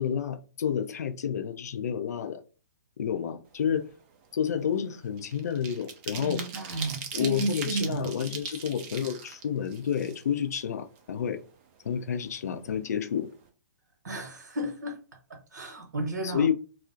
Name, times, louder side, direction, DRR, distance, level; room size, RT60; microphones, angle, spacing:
voice 1, 0.0-2.4 3.0-3.9 4.3-6.4 7.1-11.4 11.8-13.3 16.2-16.5, left 8 dB, 60° left, 0.4 m, -30 dB
sound 1, 3.6-3.8 4.2-10.6 11.0-11.1 11.4-12.3 12.6-12.8 13.1-13.4, right 6 dB, 30° right, 0.5 m, -40 dB
voice 2, 6.2-8.1 14.0-15.0 15.3-16.5, right 2 dB, 70° right, 0.9 m, -33 dB
2.4 x 2.0 x 2.5 m
figure-of-eight pair, 125°, 10 cm